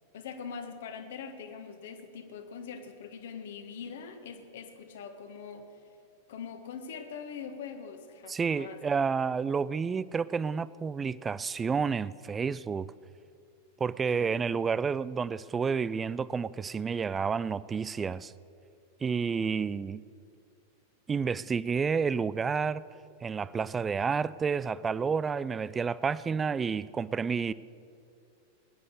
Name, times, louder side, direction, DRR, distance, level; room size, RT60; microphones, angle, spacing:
voice 1, 0.1-5.7 6.3-8.8 14.1-14.4, left 6 dB, 60° left, 7 dB, 1.5 m, -42 dB
voice 2, 8.3-12.9 13.8-18.3 19.0-20.0 21.1-22.8 23.2-27.5, right 5 dB, 20° right, 19 dB, 0.4 m, -30 dB
20.0 x 9.8 x 6.8 m, 2.5 s
figure-of-eight pair, 90°, 0 cm